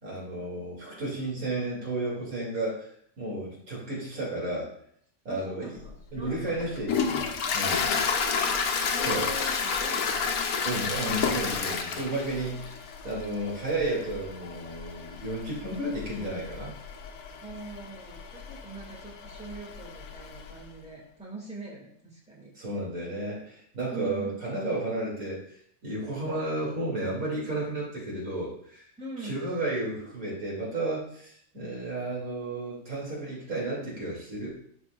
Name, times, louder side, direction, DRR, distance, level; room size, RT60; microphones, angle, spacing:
voice 1, 0.0-2.9 3.2-4.7 5.2-5.7 6.1-8.0 9.0-9.3 10.6-16.7 22.6-28.9 29.2-34.6, right 2 dB, 80° right, -5 dB, 2.8 m, -33 dB
voice 2, 5.3-6.9 8.1-10.3 11.0-11.3 12.6-12.7 17.4-22.5 23.9-24.4 29.0-29.5, right 2 dB, 5° right, -4 dB, 1.8 m, -42 dB
Toilet flush, 5.9-20.6, left 5 dB, 85° left, 1.2 m, -31 dB
11.0 x 4.6 x 2.3 m, 0.66 s
omnidirectional pair, 1.5 m